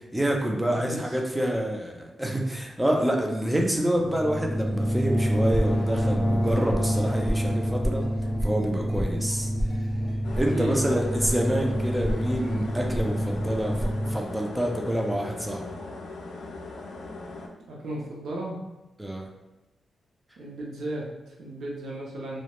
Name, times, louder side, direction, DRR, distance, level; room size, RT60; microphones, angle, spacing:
voice 1, 0.1-8.0 8.4-9.5 10.3-15.8 19.0-19.3, right 1 dB, 10° right, 0 dB, 0.3 m, -27 dB
voice 2, 0.6-1.2 10.3-10.9 17.7-18.6 20.4-22.4, right 1 dB, 80° right, -3 dB, 0.5 m, -35 dB
sound 1, 4.0-14.1, equal, 30° left, 0.7 m, -27 dB
sound 2, 10.2-17.5, left 3 dB, 85° left, 0.3 m, -40 dB
2.2 x 2.1 x 2.9 m, 0.98 s
wide cardioid pair, 125°, 0 cm